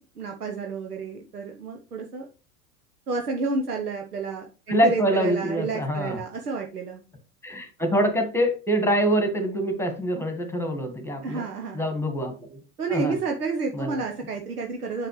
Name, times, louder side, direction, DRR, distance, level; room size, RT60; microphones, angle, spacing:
voice 1, 0.0-2.2 3.1-7.0 11.2-11.8 12.8-15.1, right 4 dB, 90° right, 2 dB, 1.0 m, -30 dB
voice 2, 4.7-6.2 7.4-11.4 11.7-12.6 12.9-13.1 13.7-13.9, equal, 5° left, 6 dB, 1.6 m, -25 dB
7.7 x 6.5 x 3.1 m, 0.34 s
figure-of-eight pair, 90°, 44 cm